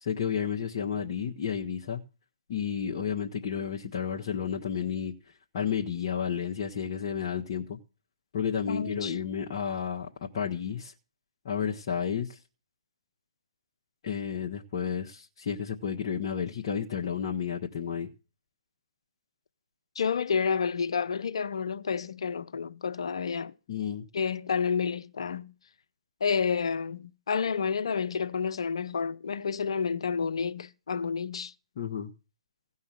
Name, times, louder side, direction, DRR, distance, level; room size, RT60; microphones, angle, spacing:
voice 1, 0.0-2.0 2.5-5.1 5.5-7.8 8.3-10.9 11.4-12.4 14.0-18.1 23.7-24.0 31.8-32.1, left 7 dB, 45° left, 1.4 m, -31 dB
voice 2, 8.7-9.2 20.0-23.5 24.1-25.5 26.2-31.5, left 6 dB, 65° left, 0.8 m, -30 dB
16.5 x 5.6 x 7.5 m
figure-of-eight pair, 135°, 3 cm